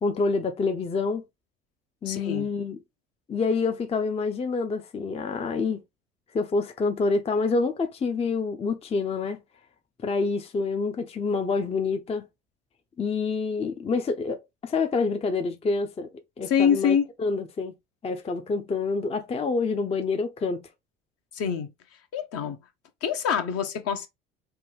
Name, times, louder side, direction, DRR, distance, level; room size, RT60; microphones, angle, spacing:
voice 1, 0.0-1.2 2.0-2.8 3.3-5.8 6.3-9.4 10.0-12.2 13.0-17.7 18.0-20.6, left 4 dB, 20° left, 0.5 m, -27 dB
voice 2, 2.0-2.5 16.5-17.1 21.3-21.7 22.1-22.6 23.0-24.1, left 7 dB, 50° left, 0.9 m, -25 dB
3.5 x 2.2 x 3.1 m
hypercardioid pair, 70°, 31 cm